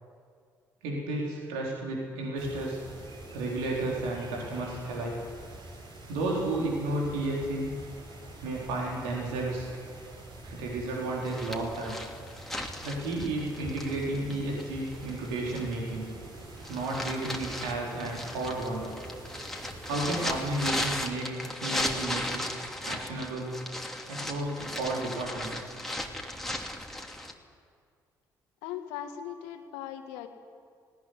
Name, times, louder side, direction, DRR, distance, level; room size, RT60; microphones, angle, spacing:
voice 1, 0.8-2.8 3.3-5.2 6.1-7.7 8.4-9.7 10.4-12.0 12.8-16.1 16.7-18.9 19.8-23.6 24.1-25.7, right 2 dB, 75° right, -2 dB, 4.1 m, -32 dB
sound 1, 2.4-21.1, right 2 dB, 50° right, 6.0 m, -46 dB
sound 2, 11.2-15.9 16.4-27.3, left 1 dB, 5° left, 2.9 m, -36 dB
voice 2, 28.6-30.3, left 10 dB, 70° left, 7 dB, 1.8 m, -39 dB
19.0 x 18.0 x 9.9 m, 2.1 s
figure-of-eight pair, 45°, 10 cm